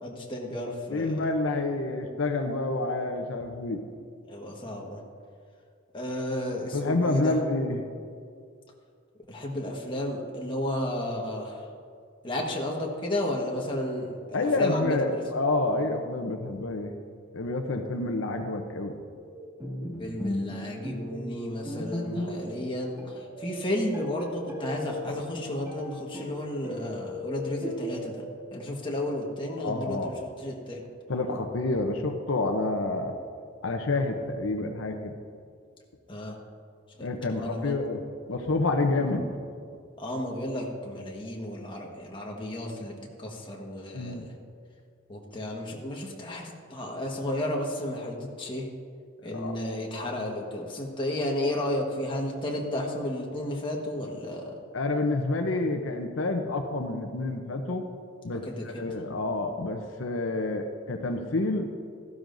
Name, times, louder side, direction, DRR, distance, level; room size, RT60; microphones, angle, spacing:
voice 1, 0.0-1.2 4.2-5.0 5.9-7.4 9.3-11.7 12.2-15.2 20.0-28.2 28.5-30.8 36.1-36.4 37.0-37.8 40.0-42.9 43.2-44.3 45.1-48.7 49.2-54.6 58.3-58.8, left 1 dB, 25° left, -1 dB, 1.4 m, -33 dB
voice 2, 0.9-3.8 6.7-7.8 14.3-16.9 17.3-18.9 29.6-30.1 31.1-33.1 33.6-35.1 37.0-38.0 38.3-39.3 43.9-44.3 49.3-49.5 54.7-57.8 58.2-61.7, left 2 dB, 75° left, 4 dB, 0.7 m, -28 dB
sound 1, 19.1-19.9 20.4-28.4, left 2 dB, 50° right, 2.8 m, -42 dB
Bowed string instrument, 19.6-22.6 23.0-23.2 23.6-23.7 23.9-25.8 26.1-27.0 27.6-28.2, equal, 15° right, 2.3 m, -36 dB
15.0 x 12.0 x 2.6 m, 2.2 s
head